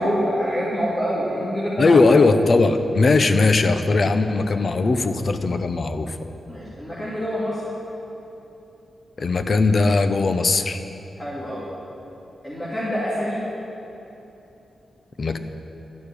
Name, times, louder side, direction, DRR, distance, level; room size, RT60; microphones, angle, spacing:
voice 1, 0.0-2.1 6.5-7.6 11.2-11.6 12.4-13.4, equal, 20° left, -8 dB, 2.9 m, -26 dB
voice 2, 1.8-6.3 9.2-10.8 15.2-15.4, left 3 dB, 50° left, 9 dB, 0.8 m, -19 dB
13.0 x 6.9 x 9.8 m, 3.0 s
wide cardioid pair, 100°, 0 cm